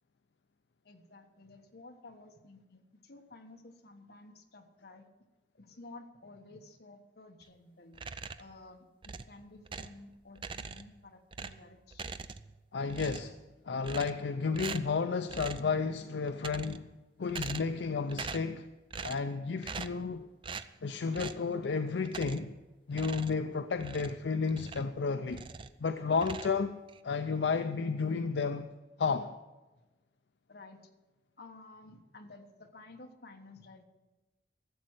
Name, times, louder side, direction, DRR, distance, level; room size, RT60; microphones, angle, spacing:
voice 1, 0.8-5.1 5.5-8.0 8.4-12.0 15.6-15.7 30.5-30.9 31.4-33.8, left 2 dB, 60° left, 1.3 m, -53 dB
sound 1, 7.9-8.6 9.0-10.0 10.4-11.0 11.3-12.6 12.9-13.4 13.8-14.3 14.5-15.0 15.3-15.7 16.3-16.9 17.3-17.8 18.1-18.6 18.9-19.3 19.6-20.1 20.4-20.7 21.1-21.5 22.1-22.6 22.9-25.0 25.3-25.8 26.1-27.0, right 5 dB, 30° right, 0.4 m, -42 dB
voice 2, 12.7-13.3 13.7-16.9 17.2-18.7 19.0-20.3 20.8-22.5 22.9-25.5 25.8-26.8 27.0-28.7 29.0-29.3, left 5 dB, 80° left, 0.5 m, -32 dB
13.0 x 7.5 x 8.1 m
head